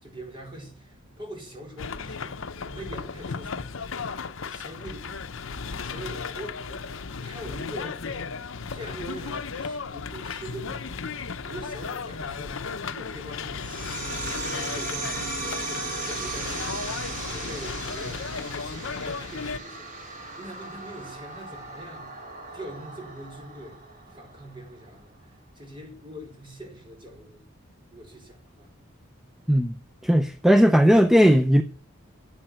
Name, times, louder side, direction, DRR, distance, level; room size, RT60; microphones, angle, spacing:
voice 1, 0.0-3.8 4.5-5.1 5.8-6.8 7.2-11.1 11.4-16.8 17.3-18.4 18.7-22.1 22.5-23.8 24.1-27.4 27.9-28.7, right 1 dB, 25° right, 4.5 m, -43 dB
sound 1, 1.8-19.6, left 5 dB, 70° left, 0.7 m, -35 dB
sound 2, 13.6-24.6, right 3 dB, 40° right, 2.4 m, -37 dB
voice 2, 30.0-31.6, equal, ahead, 0.5 m, -17 dB
10.0 x 8.7 x 8.0 m
head